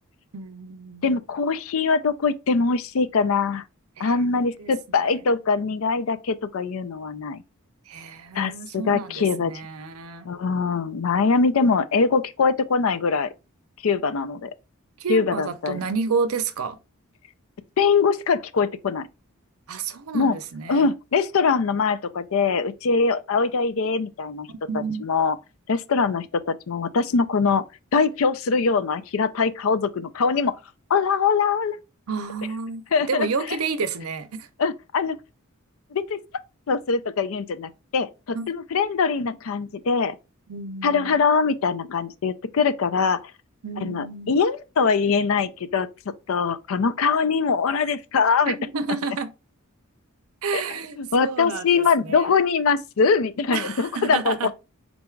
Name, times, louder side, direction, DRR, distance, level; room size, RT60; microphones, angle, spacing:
voice 1, 0.3-1.1 4.0-5.2 7.9-10.3 15.0-16.8 19.7-20.9 24.5-25.1 32.1-34.5 38.3-38.5 40.5-41.2 43.6-44.3 48.5-49.3 50.4-52.3 53.5-54.5, right 5 dB, 80° right, 0.6 m, -30 dB
voice 2, 1.0-3.6 4.0-7.4 8.3-9.5 10.3-13.3 13.8-14.5 15.1-15.8 17.8-19.1 20.1-20.4 20.7-24.5 25.0-25.4 25.7-27.6 27.9-30.6 30.9-31.8 32.9-33.3 34.6-35.2 35.9-36.2 36.7-40.2 40.8-43.3 43.8-45.9 46.3-48.6 50.5-50.6 51.0-54.5, left 5 dB, 65° left, 0.4 m, -22 dB
4.0 x 2.4 x 4.4 m
head